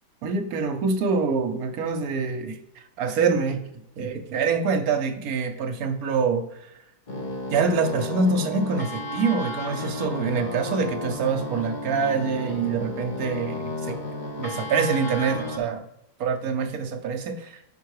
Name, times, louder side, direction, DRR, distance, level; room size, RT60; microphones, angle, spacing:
voice 1, 0.2-3.6 4.0-6.7 7.5-14.0 14.4-15.8 16.2-17.6, right 5 dB, 65° right, 6 dB, 1.1 m, -25 dB
sound 1, 7.1-15.6, left 2 dB, 40° left, 0.8 m, -33 dB
5.7 x 4.6 x 4.7 m, 0.82 s
omnidirectional pair, 1.9 m